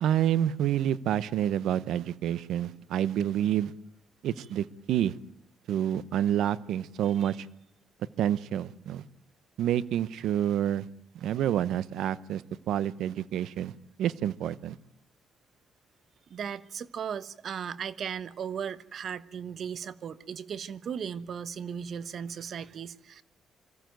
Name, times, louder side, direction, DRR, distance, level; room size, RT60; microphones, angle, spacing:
voice 1, 0.0-3.7 4.2-5.2 5.7-7.5 8.2-9.0 9.6-10.9 11.1-14.8, right 10 dB, 80° right, 17 dB, 0.9 m, -28 dB
voice 2, 16.3-23.2, right 7 dB, 60° right, 15 dB, 1.1 m, -37 dB
25.5 x 15.0 x 9.3 m, 0.77 s
cardioid pair, 90°, 0 cm